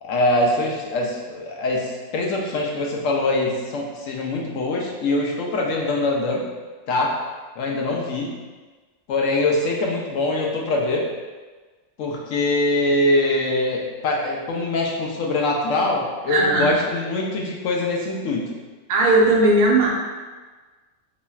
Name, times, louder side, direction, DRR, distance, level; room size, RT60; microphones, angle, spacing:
voice 1, 0.0-6.4 6.9-7.1 7.6-8.3 9.1-11.1 12.0-18.5, left 2 dB, 90° left, -1 dB, 1.0 m, -23 dB
voice 2, 16.3-16.8 18.9-19.9, right 2 dB, 50° right, -3 dB, 0.6 m, -17 dB
4.2 x 3.0 x 2.3 m, 1.3 s
omnidirectional pair, 1.3 m